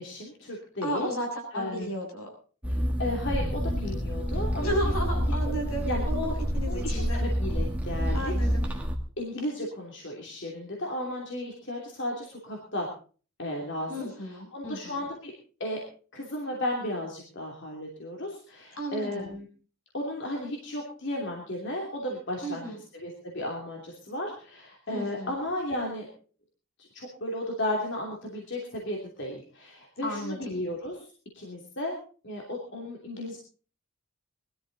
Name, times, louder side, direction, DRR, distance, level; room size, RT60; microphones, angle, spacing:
voice 1, 0.0-1.1 1.5-1.9 2.7-4.9 5.2-5.5 5.9-6.3 6.7-8.3 8.6-8.7 9.2-12.9 13.4-15.3 15.6-15.8 16.1-19.5 19.9-26.1 26.8-31.1 31.3-31.9 32.2-33.4, left 1 dB, 55° left, -1 dB, 3.0 m, -34 dB
voice 2, 0.8-2.3 4.6-7.2 8.1-8.6 13.9-15.0 18.8-19.3 22.4-22.8 24.9-25.3 30.0-30.6, equal, 75° left, 2 dB, 7.3 m, -34 dB
sound 1, 2.6-9.0, equal, 5° right, 1.7 m, -28 dB
21.0 x 13.0 x 4.0 m, 0.40 s
head